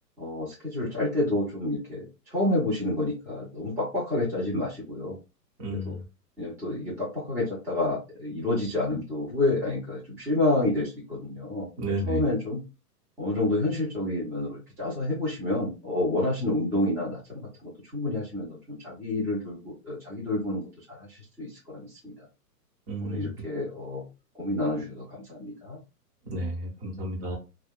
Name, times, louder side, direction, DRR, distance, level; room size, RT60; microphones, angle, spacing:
voice 1, 0.2-2.0 2.3-5.2 5.8-5.9 6.4-11.7 12.1-12.6 13.2-20.6 21.0-22.1 23.0-24.0 24.4-25.8, left 2 dB, 5° right, -8 dB, 0.7 m, -29 dB
voice 2, 5.6-6.0 11.8-12.2 22.9-23.3 26.2-27.4, right 1 dB, 40° right, -1 dB, 1.2 m, -32 dB
2.5 x 2.3 x 2.2 m, 0.28 s
figure-of-eight pair, 120°, 49 cm